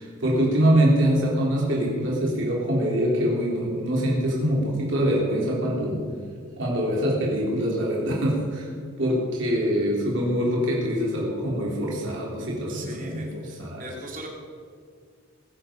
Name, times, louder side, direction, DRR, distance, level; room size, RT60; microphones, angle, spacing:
voice 1, 0.0-6.0 6.6-8.7 9.0-13.8, equal, 60° right, -4 dB, 3.7 m, -24 dB
voice 2, 12.7-14.3, right 2 dB, 40° right, 0 dB, 2.6 m, -40 dB
21.5 x 8.6 x 5.3 m, 2.1 s
head